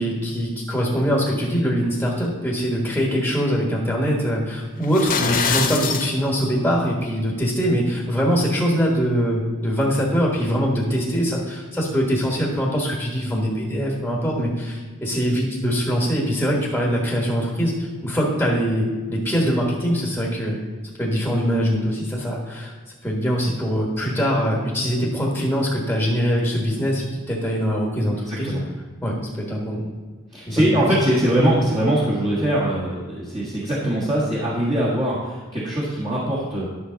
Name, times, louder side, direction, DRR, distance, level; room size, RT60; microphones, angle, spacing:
voice 1, 0.0-20.6 21.0-22.7 23.0-28.5 29.0-29.9 30.5-30.7, equal, 5° left, -4 dB, 1.5 m, -23 dB
sound 1, 4.8-6.1, left 6 dB, 40° left, 0.8 m, -23 dB
voice 2, 28.2-28.6 30.3-36.7, right 1 dB, 20° right, -7 dB, 1.6 m, -22 dB
11.0 x 6.4 x 3.9 m, 1.4 s
head